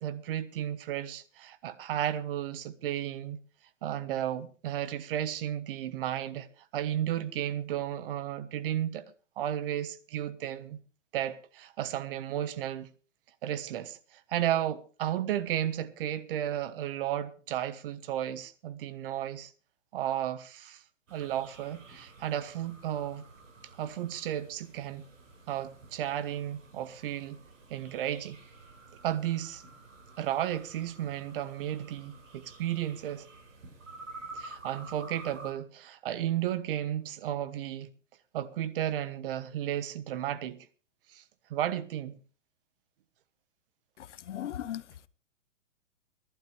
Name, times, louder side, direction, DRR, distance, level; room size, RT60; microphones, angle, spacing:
voice 1, 0.0-3.4 3.8-6.5 6.7-9.0 9.4-10.8 11.1-12.9 13.4-19.5 19.9-20.8 21.1-23.2 23.8-25.1 25.5-27.4 27.7-28.4 29.0-29.6 30.2-33.2 34.3-37.9 38.3-40.7 41.1-41.2 41.5-42.2, right 11 dB, 45° right, 1.2 m, -33 dB
sound 1, 21.1-35.5, right 3 dB, 80° right, 5.2 m, -50 dB
voice 2, 44.0-45.1, left 11 dB, 65° left, 1.0 m, -38 dB
22.0 x 12.0 x 3.3 m
hypercardioid pair, 150°, 38 cm